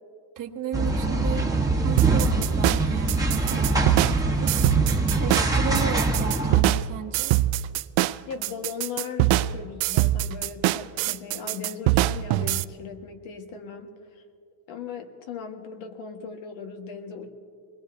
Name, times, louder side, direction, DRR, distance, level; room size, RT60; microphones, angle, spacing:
voice 1, 0.4-4.5 5.2-7.3, right 9 dB, 40° right, 1 dB, 1.1 m, -34 dB
sound 1, 0.7-6.6, right 2 dB, 5° right, 1.2 m, -24 dB
sound 2, 2.0-12.6, right 16 dB, 80° right, 0.5 m, -24 dB
voice 2, 8.2-14.2 14.7-17.3, left 6 dB, 75° left, 4 dB, 1.7 m, -38 dB
25.5 x 21.0 x 2.7 m, 2.4 s
cardioid pair, 115°, 47 cm